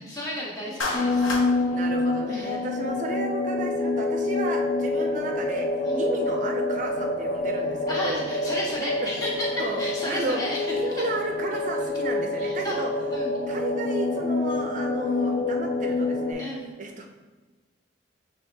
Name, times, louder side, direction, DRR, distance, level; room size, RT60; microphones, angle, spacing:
voice 1, 0.0-1.3 1.6-1.7 2.3-2.7 5.8-6.0 7.9-10.6 12.4-12.8 13.1-13.3 16.4-16.7, left 1 dB, 20° left, -4 dB, 0.9 m, -33 dB
Clapping, 0.8-1.5, left 2 dB, 85° left, 0.7 m, -29 dB
sound 1, 0.9-16.3, left 2 dB, 50° left, 0.6 m, -27 dB
voice 2, 1.7-5.7 5.9-8.2 8.8-9.1 9.6-12.9 13.5-16.5 16.8-17.1, right 2 dB, 40° right, 3 dB, 0.5 m, -33 dB
7.0 x 3.2 x 2.2 m, 1.3 s
head